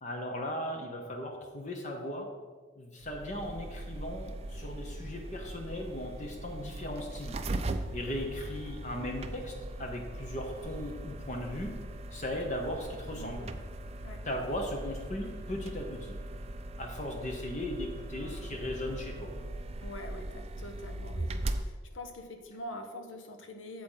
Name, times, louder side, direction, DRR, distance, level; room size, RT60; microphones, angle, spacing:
voice 1, 0.0-2.3 2.8-11.8 12.1-13.4 14.2-16.2 16.8-19.3, left 1 dB, 40° left, 2 dB, 0.9 m, -37 dB
sound 1, 3.0-21.6, right 1 dB, 30° right, 0.4 m, -39 dB
voice 2, 13.1-13.5 14.0-14.2 18.2-18.6 19.8-23.8, left 1 dB, 80° left, 5 dB, 1.0 m, -45 dB
8.6 x 7.6 x 3.9 m, 1.4 s
head